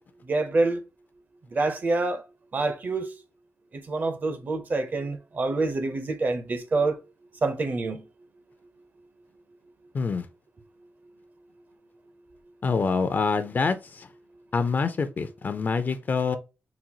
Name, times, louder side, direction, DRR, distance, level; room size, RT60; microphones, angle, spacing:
voice 1, 0.3-0.8 1.5-2.2 2.5-3.1 3.7-7.0 7.4-8.0, right 3 dB, 40° right, 0.5 m, -26 dB
voice 2, 9.9-10.3 12.6-14.1 14.5-16.4, left 4 dB, 40° left, 0.4 m, -26 dB
3.9 x 2.2 x 2.7 m
wide cardioid pair, 110°, 5 cm